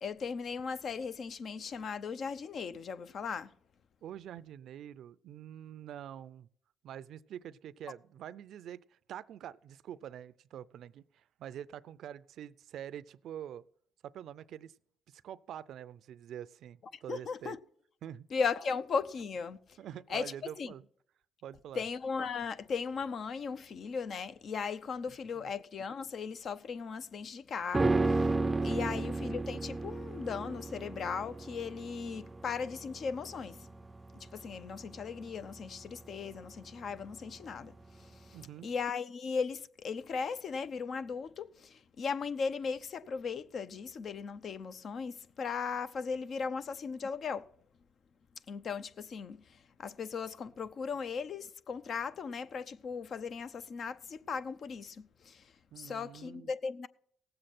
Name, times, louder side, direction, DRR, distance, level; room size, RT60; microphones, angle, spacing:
voice 1, 0.0-3.5 17.1-17.6 18.3-19.6 20.1-20.3 20.6-20.7 21.8-28.3 28.6-33.7 34.3-47.5 48.5-49.4 49.8-55.5 55.8-56.9, left 5 dB, 55° left, 0.7 m, -37 dB
voice 2, 4.0-6.5 6.8-13.6 14.0-14.7 15.1-17.6 18.0-18.3 19.8-20.9 21.4-21.8 25.1-25.5 38.3-38.7 55.7-56.5, right 10 dB, 75° right, 0.5 m, -46 dB
sound 1, 27.7-37.1 37.4-37.5, right 3 dB, 20° right, 0.5 m, -34 dB
17.5 x 7.8 x 4.3 m
cardioid pair, 90°, 0 cm